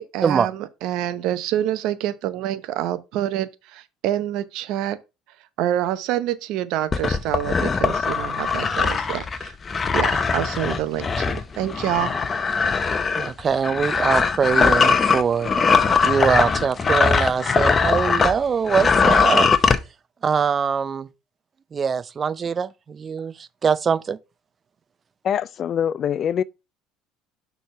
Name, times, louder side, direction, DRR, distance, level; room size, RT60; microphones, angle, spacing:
voice 1, 0.0-5.0 5.6-9.5 9.9-12.1, right 12 dB, 70° right, 0.7 m, -27 dB
sound 1, 6.9-18.4 18.7-19.8, left 5 dB, 30° left, 0.8 m, -20 dB
voice 2, 13.1-15.5 16.0-19.5 20.2-21.1 21.7-24.2, right 6 dB, 35° right, 0.5 m, -23 dB
voice 3, 25.2-26.4, left 9 dB, 50° left, 0.3 m, -23 dB
6.2 x 3.5 x 5.6 m
supercardioid pair, 80°, 0 cm